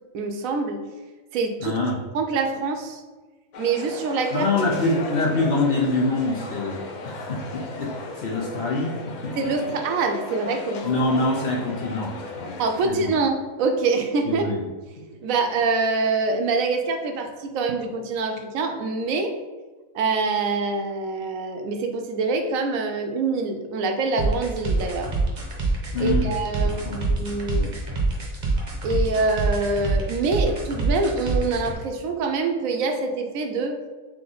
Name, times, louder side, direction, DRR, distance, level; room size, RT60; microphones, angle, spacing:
voice 1, 0.1-0.8 1.3-1.8 2.1-3.0 3.6-4.5 9.4-10.9 12.6-14.6 15.0-19.3 19.9-25.1 26.0-27.8 28.8-33.8, right 3 dB, 80° right, 5 dB, 1.0 m, -25 dB
voice 2, 1.6-2.0 4.3-9.7 10.8-12.6 12.8-13.1 14.3-14.6 25.9-26.4 26.6-27.1, left 2 dB, 55° left, -2 dB, 0.7 m, -25 dB
sound 1, 3.5-12.9, left 2 dB, 85° left, 0.4 m, -36 dB
sound 2, 24.2-31.7, right 3 dB, 40° right, 0.8 m, -26 dB
3.5 x 3.2 x 3.9 m, 1.3 s
omnidirectional pair, 1.4 m